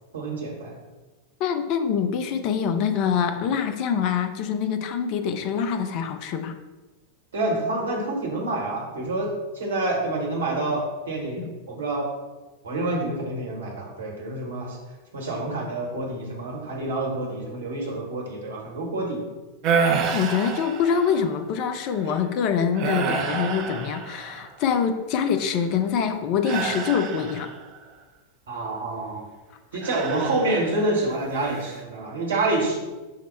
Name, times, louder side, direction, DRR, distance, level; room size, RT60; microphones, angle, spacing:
voice 1, 0.1-0.7 7.3-12.1 12.6-14.8 15.1-19.2 28.5-29.3 29.7-32.8, right 2 dB, 65° right, -1 dB, 1.1 m, -27 dB
voice 2, 1.4-6.6 11.4-11.5 20.1-27.5, left 7 dB, 40° left, 8 dB, 0.4 m, -25 dB
sound 1, 19.6-21.3 21.9-22.2 22.7-24.6 26.4-27.8 29.8-30.9 31.3-31.8, right 5 dB, 40° right, 0.5 m, -28 dB
5.7 x 2.0 x 4.3 m, 1.2 s
figure-of-eight pair, 90°, 0 cm